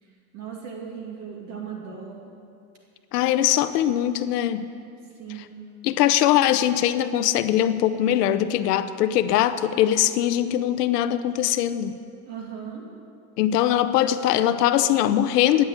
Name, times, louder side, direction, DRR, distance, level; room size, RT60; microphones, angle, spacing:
voice 1, 0.0-2.3 5.2-5.6 12.3-12.9, right 7 dB, 35° right, -1 dB, 2.3 m, -37 dB
voice 2, 3.1-4.7 5.8-11.9 13.4-15.6, left 12 dB, 80° left, 12 dB, 0.9 m, -21 dB
13.0 x 10.0 x 8.1 m, 2.4 s
supercardioid pair, 175°, 47 cm